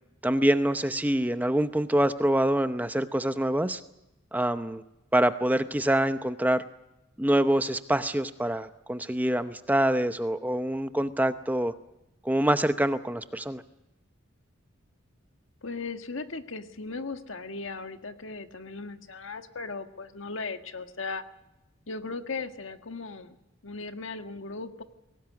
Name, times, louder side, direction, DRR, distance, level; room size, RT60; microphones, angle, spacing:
voice 1, 0.2-3.8 4.3-4.8 5.1-6.6 7.2-11.7 12.2-13.6, right 1 dB, 10° right, 11 dB, 0.8 m, -25 dB
voice 2, 15.6-21.2 21.9-23.4 23.6-24.8, left 3 dB, 80° left, 8 dB, 1.6 m, -37 dB
22.0 x 18.5 x 9.5 m, 0.93 s
head